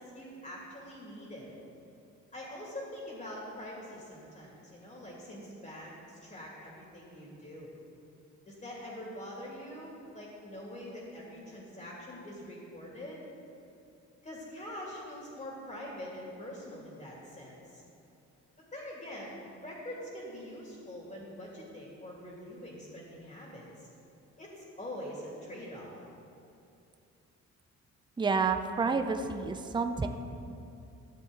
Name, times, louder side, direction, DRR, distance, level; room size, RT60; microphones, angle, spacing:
voice 1, 0.0-1.5 2.3-7.7 8.4-13.2 14.2-17.8 18.7-23.9 24.4-25.9, left 1 dB, 25° left, -4 dB, 2.5 m, -44 dB
voice 2, 28.2-30.1, right 4 dB, 15° right, 7 dB, 0.5 m, -29 dB
13.0 x 7.7 x 3.9 m, 2.7 s
cardioid pair, 90°, 30 cm